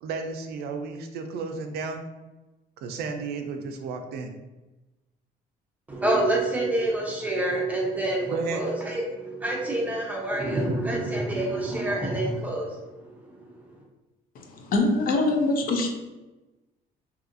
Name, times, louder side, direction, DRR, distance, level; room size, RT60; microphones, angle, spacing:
voice 1, 0.0-2.0 2.8-4.3 8.3-8.6, right 4 dB, 70° right, 5 dB, 0.4 m, -33 dB
voice 2, 5.9-13.6, right 1 dB, 10° right, -2 dB, 0.7 m, -27 dB
voice 3, 14.4-15.9, left 2 dB, 55° left, 2 dB, 0.5 m, -24 dB
2.7 x 2.4 x 2.5 m, 1.1 s
cardioid pair, 110°, 17 cm